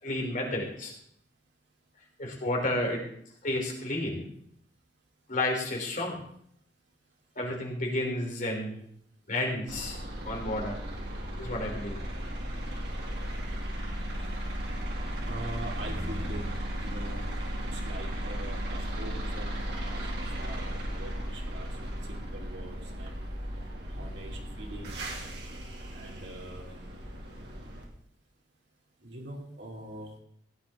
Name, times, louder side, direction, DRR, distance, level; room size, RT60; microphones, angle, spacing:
voice 1, 0.0-0.9 2.2-3.0 3.4-4.2 5.3-6.2 7.3-8.8 9.3-10.0 10.2-10.8 11.4-12.0, left 1 dB, 50° left, 0 dB, 3.5 m, -31 dB
sound 1, 9.7-27.8, equal, 65° right, 2.6 m, -35 dB
voice 2, 15.3-16.4 16.7-17.3 17.7-19.8 20.0-20.1 20.4-21.7 22.1-23.3 23.9-25.2 25.9-26.6 29.0-30.1, right 1 dB, 85° right, -1 dB, 2.9 m, -43 dB
16.0 x 10.0 x 3.7 m, 0.67 s
head